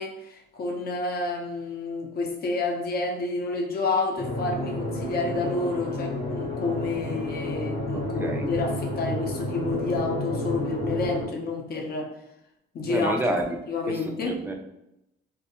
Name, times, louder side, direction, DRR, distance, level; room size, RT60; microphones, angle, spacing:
voice 1, 0.0-12.1 12.7-13.1 13.7-14.4, left 3 dB, 50° left, 1 dB, 0.6 m, -29 dB
sound 1, 4.2-11.3, left 1 dB, 85° left, 1.3 m, -31 dB
voice 2, 7.9-8.5 12.8-14.5, right 1 dB, 10° right, 3 dB, 0.3 m, -30 dB
2.3 x 2.1 x 2.8 m, 0.86 s
cardioid pair, 90°, 20 cm